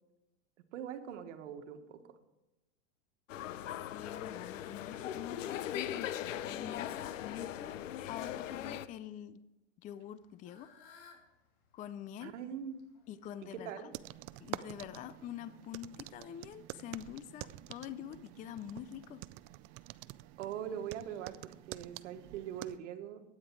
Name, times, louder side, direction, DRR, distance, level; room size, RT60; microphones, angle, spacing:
voice 1, 0.7-2.2 12.2-12.8 13.4-13.9 20.4-23.2, right 9 dB, 75° right, 7 dB, 1.6 m, -42 dB
sound 1, 3.3-8.9, left 11 dB, 85° left, 0.8 m, -40 dB
voice 2, 3.9-9.4 9.8-10.7 11.7-12.3 13.1-13.7 14.4-19.2, left 10 dB, 20° left, 14 dB, 0.4 m, -46 dB
Fowl / Bird, 9.9-15.2, left 5 dB, 55° left, 3.2 m, -63 dB
sound 2, 13.9-22.8, right 17 dB, 40° right, 0.4 m, -48 dB
12.5 x 9.7 x 4.6 m, 1.0 s
supercardioid pair, 125°, 37 cm